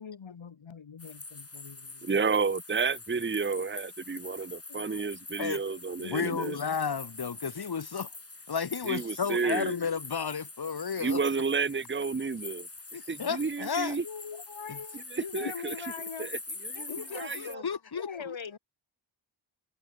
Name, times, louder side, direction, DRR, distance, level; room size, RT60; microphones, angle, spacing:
voice 1, 0.0-1.2 1.5-2.2 4.7-5.0 5.7-6.5 14.0-16.3 16.7-17.7 17.9-18.6, left 6 dB, 70° left, 2.8 m, -42 dB
sound 1, 1.0-17.5, left 3 dB, 30° left, 3.3 m, -44 dB
voice 2, 2.0-6.6 8.8-9.7 11.0-12.7 13.1-14.0 14.9-15.9 16.2-16.9 17.1-17.6, right 5 dB, 25° right, 1.0 m, -31 dB
voice 3, 6.0-8.1 8.5-11.2 12.9-14.0 14.7-14.8 15.4-15.5 16.9-18.4, left 6 dB, 50° left, 1.8 m, -33 dB
cardioid pair, 50°, 49 cm